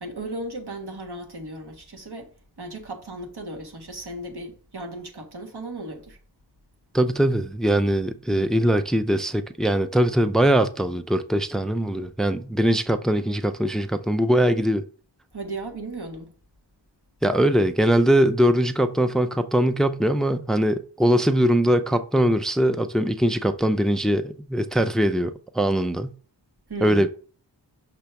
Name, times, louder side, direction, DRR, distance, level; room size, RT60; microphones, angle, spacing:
voice 1, 0.0-6.2 15.3-16.3 26.7-27.1, right 2 dB, 65° right, 1.5 m, -36 dB
voice 2, 6.9-14.9 17.2-26.1 26.8-27.1, right 1 dB, ahead, 0.4 m, -21 dB
6.0 x 3.4 x 5.8 m
wide cardioid pair, 70°, 43 cm